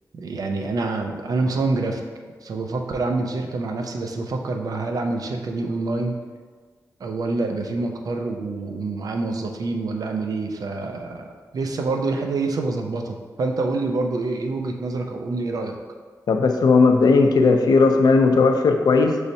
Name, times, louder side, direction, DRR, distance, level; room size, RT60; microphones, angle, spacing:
voice 1, 0.1-2.0 2.4-6.2 7.0-15.8, right 3 dB, 60° right, 4 dB, 0.4 m, -26 dB
voice 2, 16.3-19.2, left 4 dB, 75° left, 4 dB, 0.4 m, -16 dB
5.1 x 3.2 x 2.7 m, 1.5 s
wide cardioid pair, 175°, 7 cm